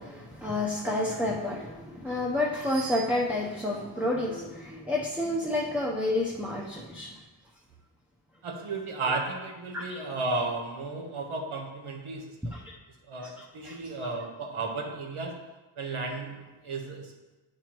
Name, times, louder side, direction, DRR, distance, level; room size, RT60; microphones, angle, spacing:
voice 1, 0.0-7.1 9.7-9.8 12.5-12.6 13.4-14.1, left 1 dB, 5° right, -3 dB, 0.7 m, -30 dB
voice 2, 8.4-12.3 13.0-15.4 15.8-16.4 16.6-17.1, right 3 dB, 85° right, 0 dB, 1.2 m, -33 dB
8.9 x 4.6 x 3.0 m, 1.2 s
wide cardioid pair, 85°, 49 cm